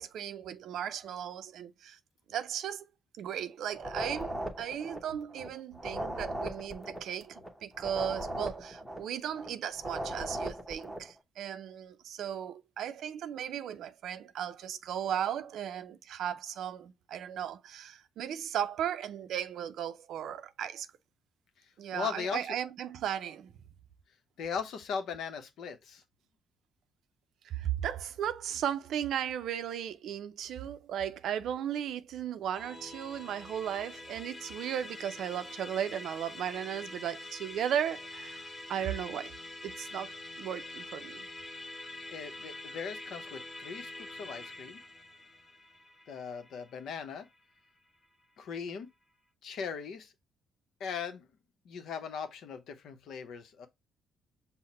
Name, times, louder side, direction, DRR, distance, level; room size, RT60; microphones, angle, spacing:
voice 1, 0.0-2.0 2.3-2.8 3.2-20.9 21.8-23.5 27.4-39.3 39.6-41.3, right 9 dB, 75° right, 0.4 m, -36 dB
sound 1, 3.7-5.5 5.7-9.5 9.7-11.1, right 1 dB, 5° left, 0.9 m, -38 dB
voice 2, 21.9-22.4 24.4-26.0 42.1-44.8 46.1-47.3 48.4-48.9 49.4-50.1 50.8-51.3 51.6-53.7, left 6 dB, 75° left, 0.7 m, -39 dB
Musical instrument, 32.5-48.0, left 2 dB, 25° left, 1.4 m, -46 dB
5.7 x 2.1 x 4.1 m
cardioid pair, 90°, 0 cm